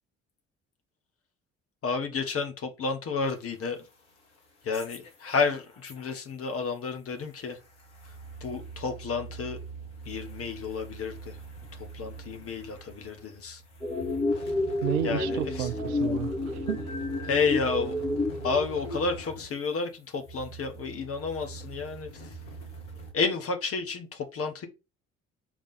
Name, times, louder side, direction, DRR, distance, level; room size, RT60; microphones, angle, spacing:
voice 1, 1.8-3.9 4.6-7.6 8.4-9.6 10.0-11.4 11.7-13.6 15.0-15.7 17.3-17.9 18.4-22.3 23.1-24.7, left 4 dB, 40° left, 1.2 m, -31 dB
sound 1, 3.3-6.5 6.8-23.1, right 3 dB, 75° left, 1.4 m, -44 dB
sound 2, 13.8-19.0, left 2 dB, 15° left, 1.3 m, -30 dB
voice 2, 14.8-16.9, right 12 dB, 70° right, 0.6 m, -32 dB
5.0 x 3.6 x 5.6 m
figure-of-eight pair, 50°, 35 cm